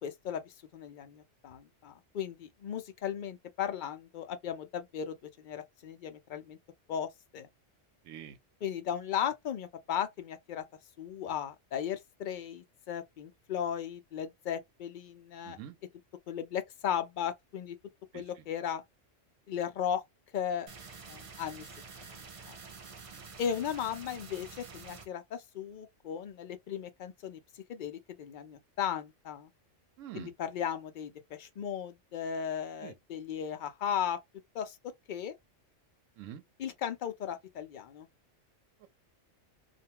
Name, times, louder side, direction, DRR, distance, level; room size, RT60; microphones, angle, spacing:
voice 1, 0.0-5.2 5.4-6.6 6.9-7.5 8.6-10.6 11.0-15.6 16.3-17.8 18.1-18.8 19.5-20.0 20.3-20.7 21.1-21.6 22.5-22.6 23.4-27.4 27.7-29.5 30.1-34.2 34.5-34.8 35.1-35.3 36.6-38.1, left 9 dB, 65° left, 0.5 m, -36 dB
voice 2, 8.0-8.4 15.4-15.8 18.1-18.4 23.1-23.2 30.0-30.3 32.8-32.9 36.2-36.4 38.8-38.9, right 11 dB, 85° right, 0.9 m, -46 dB
sound 1, 20.7-25.1, right 5 dB, 55° right, 0.4 m, -48 dB
2.4 x 2.2 x 2.8 m
omnidirectional pair, 1.3 m